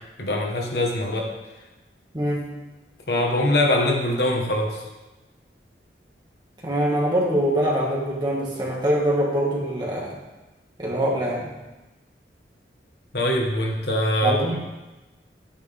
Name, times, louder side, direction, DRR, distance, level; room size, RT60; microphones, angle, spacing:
voice 1, 0.2-1.3 3.1-4.8 13.1-14.6, left 1 dB, 65° left, 0 dB, 1.5 m, -23 dB
voice 2, 2.1-2.5 6.6-10.1 10.8-11.5 14.2-14.6, equal, 25° right, -4 dB, 2.0 m, -23 dB
9.9 x 9.4 x 3.6 m, 1.1 s
head